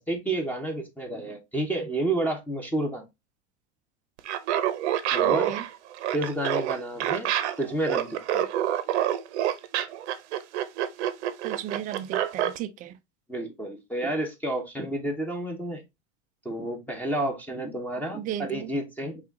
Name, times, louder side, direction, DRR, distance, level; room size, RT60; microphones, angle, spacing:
voice 1, 0.1-3.1 5.1-5.5 6.1-7.3 7.6-8.5 13.3-15.8 16.4-19.2, right 1 dB, 5° left, 0.9 m, -30 dB
Laughter, 4.2-12.6, right 11 dB, 80° right, 0.8 m, -27 dB
voice 2, 5.2-5.6 11.4-12.9 18.2-18.7, right 11 dB, 25° right, 0.4 m, -35 dB
5.7 x 2.5 x 3.6 m
supercardioid pair, 135°, 34 cm